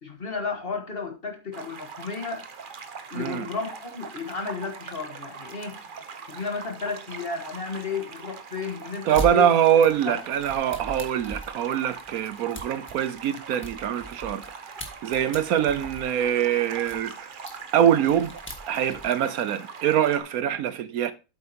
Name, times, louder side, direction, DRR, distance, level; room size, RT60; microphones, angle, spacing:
voice 1, 0.0-2.4 3.1-5.8 6.3-9.5 10.0-10.2, left 5 dB, 40° left, 1.6 m, -33 dB
sound 1, 1.5-20.2, right 5 dB, 40° right, 0.8 m, -42 dB
voice 2, 3.1-3.5 9.1-14.6 15.0-17.3 17.7-18.3 18.7-21.1, right 9 dB, 75° right, 1.1 m, -23 dB
sound 2, 9.1-9.3 9.8-14.5 14.8-17.0 17.5-17.6 17.9-19.1, right 1 dB, 10° left, 1.5 m, -38 dB
8.5 x 7.9 x 2.8 m
omnidirectional pair, 1.7 m